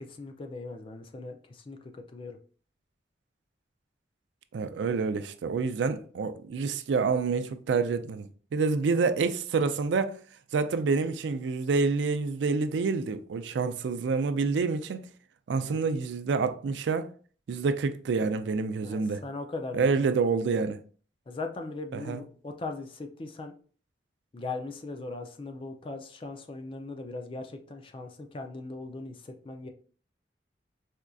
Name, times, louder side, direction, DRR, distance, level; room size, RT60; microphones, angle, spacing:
voice 1, 0.0-2.4 15.7-15.8 18.8-19.9 21.3-23.5 24.3-29.7, left 3 dB, 30° left, 0.4 m, -39 dB
voice 2, 4.5-10.2 10.5-15.1 15.5-17.1 17.5-19.2 19.7-20.8 21.9-22.2, right 4 dB, 85° right, 0.4 m, -27 dB
4.3 x 2.5 x 2.3 m
head